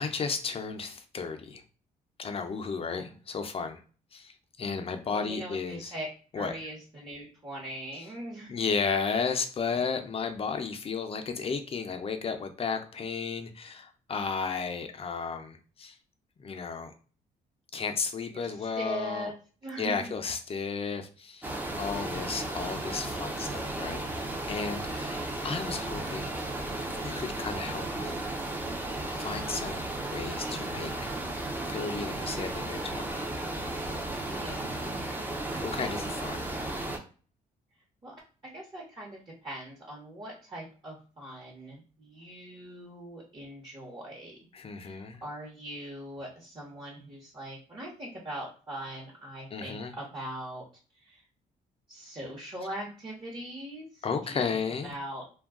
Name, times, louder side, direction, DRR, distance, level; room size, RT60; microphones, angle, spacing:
voice 1, 0.0-1.6 2.2-3.8 4.1-5.9 6.3-6.5 8.5-16.0 16.4-16.9 17.7-19.3 19.8-21.5 21.8-24.0 24.4-26.4 27.0-28.2 29.2-29.8 30.1-31.1 31.7-33.2 35.5-36.4 44.5-45.2 49.5-49.9 54.0-54.9, left 5 dB, 35° left, 6 dB, 0.5 m, -33 dB
voice 2, 5.1-6.1 6.3-8.5 9.7-9.8 18.3-19.4 19.6-20.2 34.3-34.7 38.0-38.1 38.4-44.4 44.8-50.6 50.9-51.2 51.9-55.2, right 1 dB, 30° right, -4 dB, 1.0 m, -41 dB
sound 1, 21.4-37.0, right 2 dB, 10° right, 0.6 m, -34 dB
2.2 x 2.2 x 3.6 m, 0.39 s
cardioid pair, 90°, 16 cm